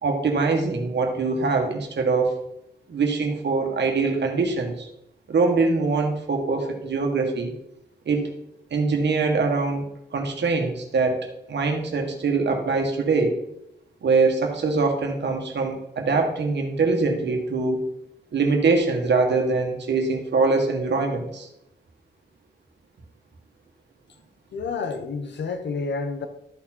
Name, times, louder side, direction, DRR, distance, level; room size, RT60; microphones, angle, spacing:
voice 1, 0.0-2.4 2.9-4.9 5.3-7.5 8.0-8.3 8.7-9.8 10.1-13.4 14.0-17.8 18.3-21.5, right 4 dB, 80° right, 1.6 m, -23 dB
voice 2, 24.5-26.3, left 4 dB, 80° left, 1.0 m, -29 dB
12.5 x 4.3 x 4.4 m
cardioid pair, 75°, 18 cm